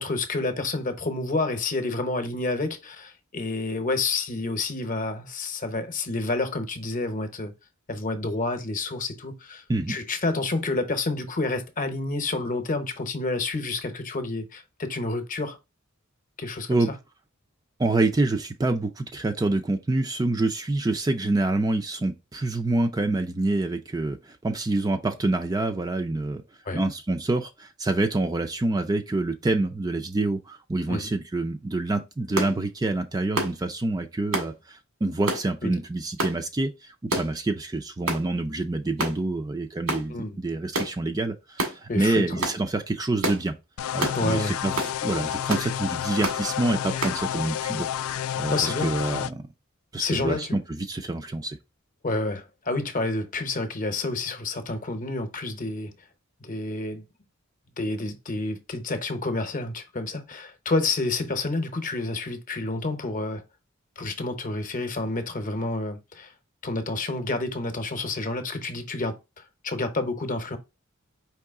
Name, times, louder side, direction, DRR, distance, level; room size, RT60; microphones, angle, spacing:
voice 1, 0.0-7.5 7.9-9.6 9.9-15.6 16.4-16.8 26.7-26.8 30.9-31.0 35.6-35.7 40.1-40.4 41.9-42.2 44.1-44.6 48.5-48.9 50.0-50.6 52.0-55.9 56.4-57.0 57.8-63.4 64.0-66.3 66.6-70.6, left 2 dB, 40° left, 0.8 m, -29 dB
voice 2, 17.8-24.2 24.4-26.4 26.7-43.5 43.9-44.7 45.0-47.9 48.4-49.4 49.9-51.6, right 2 dB, 20° right, 0.4 m, -27 dB
sound 1, 32.4-32.5 33.4-33.6 34.3-34.5 35.3-35.5 36.2-36.4 37.1-37.4 38.1-38.2 39.0-39.2 39.9-40.1 40.7-40.9 41.6-41.8 42.4-42.6 43.2-43.4 44.0-44.2 44.8-44.9 45.5-45.7 46.2-46.4 47.0-47.2, right 2 dB, 85° right, 1.8 m, -28 dB
sound 2, 43.8-49.3, left 10 dB, 85° left, 0.3 m, -30 dB
4.7 x 3.1 x 3.6 m
head